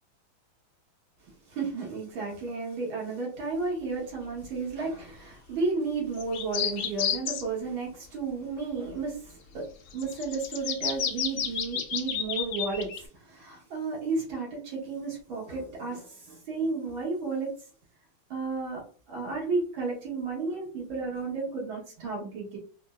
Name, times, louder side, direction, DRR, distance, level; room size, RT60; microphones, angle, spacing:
voice 1, 1.5-17.5 18.3-18.8 19.1-22.6, right 4 dB, 80° right, 2.1 m, -33 dB
sound 1, 6.2-7.4 9.9-13.0, left 8 dB, 75° left, 1.1 m, -31 dB
4.2 x 2.1 x 2.3 m
omnidirectional pair, 2.2 m